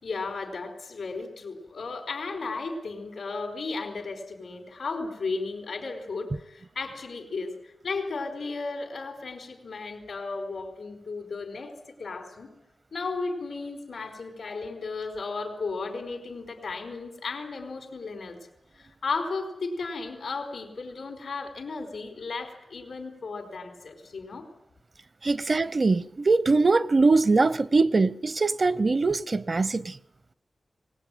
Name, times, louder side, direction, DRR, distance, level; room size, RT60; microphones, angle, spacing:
voice 1, 0.0-11.7 12.0-12.5 12.9-18.4 18.7-24.4, left 4 dB, 90° left, 4.5 m, -34 dB
voice 2, 25.2-29.9, right 3 dB, 50° right, 0.8 m, -22 dB
21.5 x 18.5 x 9.1 m
cardioid pair, 40°, 0 cm